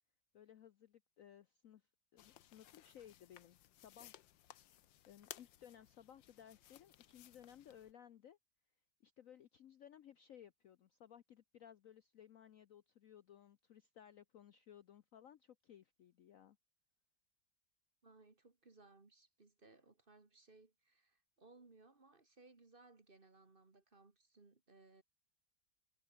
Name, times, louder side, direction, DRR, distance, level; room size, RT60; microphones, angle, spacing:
voice 1, 0.3-1.8 2.1-4.2 5.1-8.4 9.0-16.6, left 10 dB, 60° left, 0.9 m, -60 dB
sound 1, 2.2-7.9, left 12 dB, 85° left, 1.6 m, -60 dB
voice 2, 18.0-25.0, right 3 dB, 30° right, 1.9 m, -64 dB
omnidirectional pair, 2.0 m